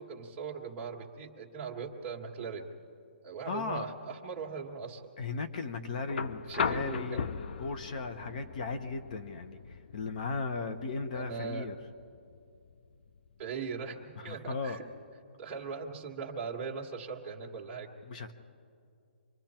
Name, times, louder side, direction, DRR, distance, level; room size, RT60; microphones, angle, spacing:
voice 1, 0.0-2.7 3.2-5.0 6.5-7.3 11.1-11.7 13.4-14.8 15.4-17.9, right 5 dB, 20° right, -1 dB, 1.8 m, -40 dB
voice 2, 3.4-3.9 5.2-11.8 14.2-14.8 18.1-18.3, left 4 dB, 40° left, 8 dB, 1.1 m, -36 dB
sound 1, 6.1-14.1 15.5-15.6, left 6 dB, 55° left, 0.7 m, -39 dB
27.5 x 24.5 x 4.5 m, 2.4 s
hypercardioid pair, 165°, 6 cm